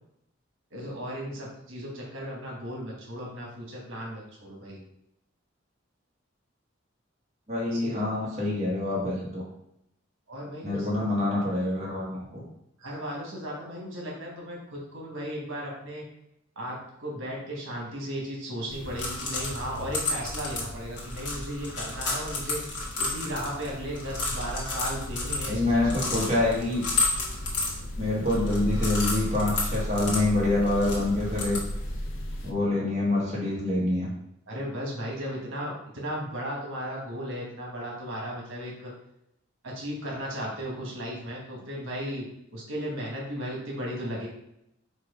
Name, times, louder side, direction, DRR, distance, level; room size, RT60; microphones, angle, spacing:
voice 1, 0.7-4.8 7.7-8.0 10.3-11.0 12.8-16.0 16.5-22.6 23.0-25.9 34.5-38.9 39.6-42.2 42.5-44.3, equal, 85° right, -3 dB, 1.4 m, -35 dB
voice 2, 7.5-9.4 10.6-12.4 25.5-26.8 28.0-31.6 32.4-34.1, left 2 dB, 35° right, -6 dB, 1.4 m, -26 dB
sound 1, 18.7-32.5, equal, 90° left, 0.7 m, -36 dB
sound 2, 18.7-32.0, left 3 dB, 60° left, 1.2 m, -33 dB
4.4 x 2.4 x 4.8 m, 0.82 s
head